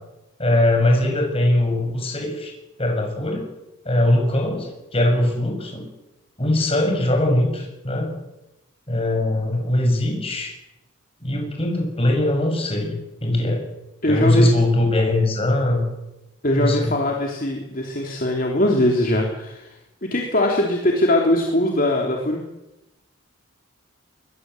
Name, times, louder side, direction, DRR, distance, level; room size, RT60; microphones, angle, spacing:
voice 1, 0.4-2.5 2.8-3.4 3.9-5.9 6.4-8.1 8.9-10.5 11.2-13.6 14.1-15.9 16.6-16.9, left 1 dB, 25° left, 2 dB, 6.8 m, -21 dB
voice 2, 14.0-14.5 16.4-19.7 20.0-22.4, left 1 dB, 45° left, 0 dB, 3.3 m, -21 dB
23.0 x 21.5 x 8.0 m, 0.97 s
head